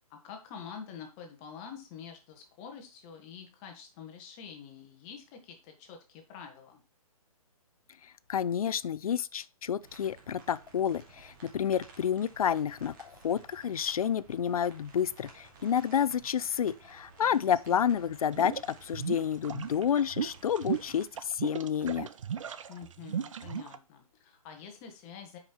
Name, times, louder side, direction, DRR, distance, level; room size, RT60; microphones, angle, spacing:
voice 1, 0.1-6.8 17.3-17.8 22.7-25.4, left 7 dB, 20° left, 1.3 m, -47 dB
voice 2, 8.3-22.1, left 8 dB, 75° left, 0.5 m, -30 dB
sound 1, 9.8-21.1, right 4 dB, 35° right, 1.8 m, -55 dB
sound 2, 18.3-23.8, right 8 dB, 60° right, 0.7 m, -36 dB
7.1 x 5.2 x 4.3 m
hypercardioid pair, 165°, 19 cm